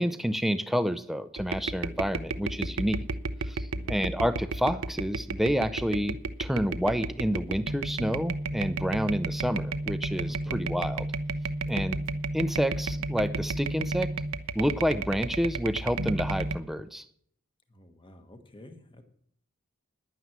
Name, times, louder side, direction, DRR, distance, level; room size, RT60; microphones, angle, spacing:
voice 1, 0.0-3.0 3.5-11.1 11.7-12.0 12.3-14.1 14.5-17.0, equal, ahead, 11 dB, 0.6 m, -29 dB
sound 1, 1.4-16.6, right 3 dB, 85° right, 0.7 m, -33 dB
voice 2, 3.7-4.1 10.3-10.6 11.6-11.9 17.7-19.0, left 1 dB, 25° left, 7 dB, 1.4 m, -50 dB
10.5 x 9.5 x 7.4 m, 0.64 s
head